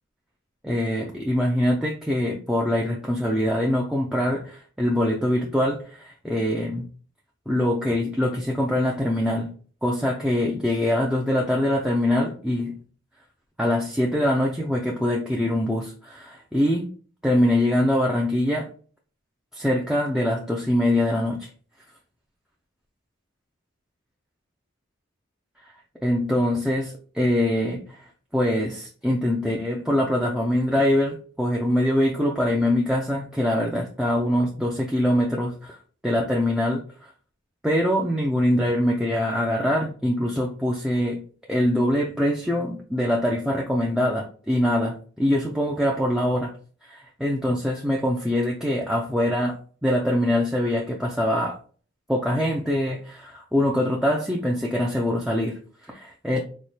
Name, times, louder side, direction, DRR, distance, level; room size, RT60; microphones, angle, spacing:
voice 1, 0.6-6.9 7.5-9.5 9.8-12.8 13.6-16.9 17.2-18.7 19.5-21.5 25.6-25.7 26.0-35.8 36.0-37.1 37.6-41.2 41.5-46.5 46.8-51.6 52.1-56.4, left 1 dB, 5° right, 0.3 m, -23 dB
4.1 x 2.2 x 3.1 m
head